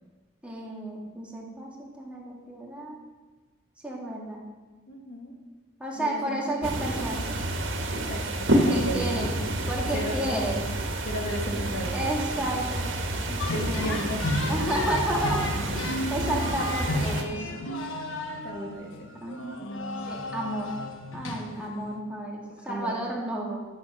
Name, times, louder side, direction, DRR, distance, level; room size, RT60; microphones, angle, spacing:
voice 1, 0.4-3.0 3.8-4.4 5.8-7.4 8.5-9.3 9.7-10.6 11.9-12.9 13.3-14.0 14.5-15.8 16.1-17.5 19.2-19.6 20.1-20.7 21.1-23.6, right 1 dB, 5° right, -3 dB, 2.3 m, -32 dB
voice 2, 4.9-5.4 5.9-6.7 7.9-9.1 9.9-10.4 11.0-12.0 13.5-14.2 18.4-19.1 21.5-21.8 22.6-23.0, equal, 55° left, 1 dB, 2.0 m, -35 dB
sound 1, 6.6-17.2, right 1 dB, 75° right, 1.7 m, -29 dB
sound 2, 13.4-22.0, left 1 dB, 85° left, 1.3 m, -33 dB
12.5 x 7.1 x 6.4 m, 1.3 s
head